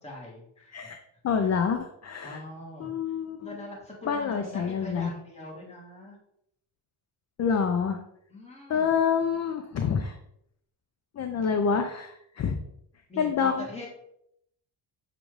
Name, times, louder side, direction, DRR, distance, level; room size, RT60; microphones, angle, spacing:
voice 1, 0.0-0.9 1.4-1.6 2.2-2.9 3.4-6.2 8.3-9.0 13.1-13.9, left 1 dB, 15° left, -3 dB, 1.5 m, -42 dB
voice 2, 1.2-2.4 2.8-3.6 4.1-5.1 7.4-8.0 8.7-10.2 11.2-12.6 13.2-13.7, left 6 dB, 35° left, 6 dB, 0.5 m, -27 dB
6.7 x 2.5 x 3.1 m, 0.74 s
cardioid pair, 75°, 49 cm